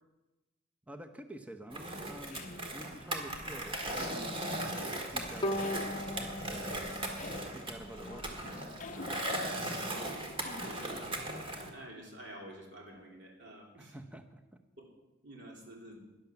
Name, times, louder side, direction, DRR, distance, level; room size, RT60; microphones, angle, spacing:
voice 1, 0.9-4.4 4.8-6.3 7.3-9.3 13.7-14.4, right 1 dB, 5° right, 6 dB, 0.8 m, -49 dB
Skateboard, 1.7-11.7, right 1 dB, 25° right, 1.7 m, -38 dB
sound 1, 2.1-11.4, left 3 dB, 40° left, 0.6 m, -50 dB
Bowed string instrument, 5.4-8.5, left 1 dB, 20° left, 1.0 m, -39 dB
voice 2, 10.5-11.2 11.7-14.0 14.8-14.9 15.2-16.0, right 1 dB, 60° right, -1 dB, 3.4 m, -49 dB
11.0 x 10.5 x 7.1 m, 1.1 s
head